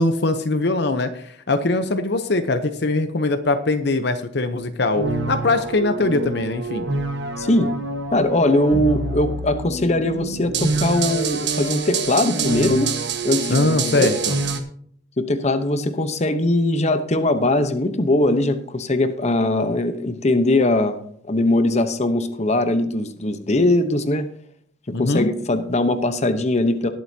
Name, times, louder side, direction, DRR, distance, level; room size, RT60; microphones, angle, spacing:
voice 1, 0.0-6.9 13.5-14.4 24.9-25.3, left 2 dB, 60° left, 9 dB, 0.8 m, -21 dB
sound 1, 5.0-14.6, right 3 dB, 65° right, 1.4 m, -26 dB
voice 2, 7.4-7.7 8.1-12.9 13.2-14.1 15.2-21.0 21.3-24.3 25.0-26.9, left 1 dB, 35° left, 9 dB, 1.0 m, -20 dB
20.0 x 7.9 x 2.8 m, 0.63 s
head